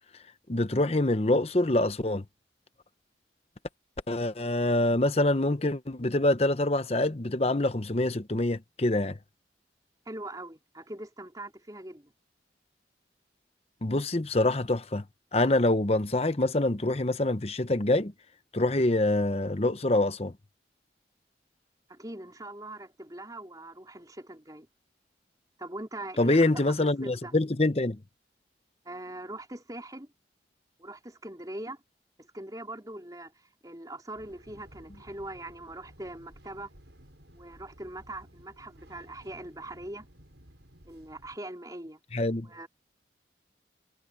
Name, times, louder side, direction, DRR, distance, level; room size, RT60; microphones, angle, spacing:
voice 1, 0.5-2.2 4.1-9.2 13.8-15.0 15.3-18.1 18.5-20.3 26.2-28.0 42.1-42.5, left 2 dB, 35° left, 0.9 m, -25 dB
voice 2, 10.1-12.1 21.9-24.7 25.6-27.3 28.8-30.1 30.8-31.8 32.2-36.7 37.3-40.1 40.8-42.0 42.4-42.7, right 1 dB, 20° right, 4.0 m, -42 dB
sound 1, 34.1-41.4, equal, 80° right, 7.1 m, -55 dB
head